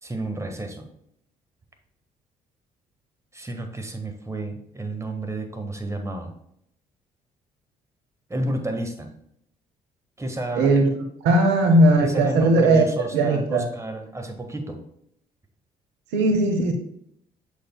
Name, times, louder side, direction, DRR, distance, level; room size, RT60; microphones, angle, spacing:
voice 1, 0.0-0.9 3.3-6.3 8.3-9.1 10.2-10.8 12.0-14.8, right 1 dB, 15° right, 5 dB, 1.6 m, -31 dB
voice 2, 10.6-10.9 11.2-12.9 13.1-13.6 16.1-16.7, right 2 dB, 70° right, 5 dB, 1.0 m, -18 dB
7.4 x 7.0 x 2.3 m, 0.73 s
hypercardioid pair, 50°, 18 cm